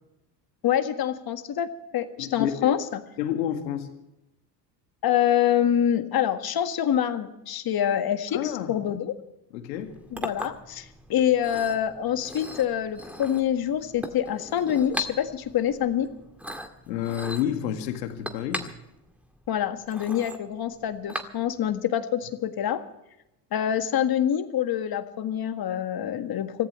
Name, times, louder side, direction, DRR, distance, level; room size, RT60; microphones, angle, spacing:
voice 1, 0.6-3.0 5.0-9.1 10.1-16.1 19.5-22.8 23.5-26.7, left 10 dB, 45° left, 8 dB, 1.7 m, -26 dB
voice 2, 2.2-2.7 3.2-3.9 8.3-8.7 9.5-9.9 16.9-18.6, left 10 dB, 85° left, 6 dB, 2.0 m, -29 dB
Chink clink, 9.7-21.8, left 1 dB, 5° right, 2.0 m, -39 dB
25.5 x 15.5 x 3.2 m, 0.92 s
hypercardioid pair, 75°, 50 cm